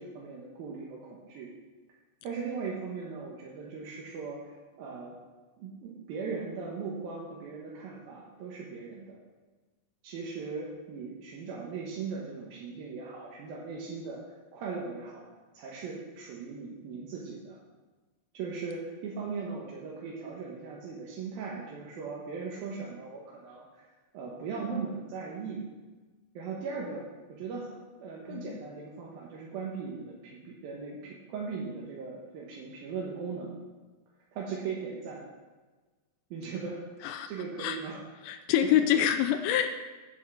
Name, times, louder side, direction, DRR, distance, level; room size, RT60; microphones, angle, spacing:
voice 1, 0.0-1.5 2.2-5.2 5.6-9.2 10.0-14.2 14.5-15.2 15.5-17.6 18.3-23.7 24.1-25.7 26.3-33.5 34.3-35.3 36.3-38.3, right 5 dB, 65° right, -4 dB, 2.7 m, -39 dB
voice 2, 38.2-39.8, left 10 dB, 85° left, 8 dB, 2.6 m, -26 dB
8.3 x 8.0 x 6.4 m, 1.3 s
omnidirectional pair, 5.3 m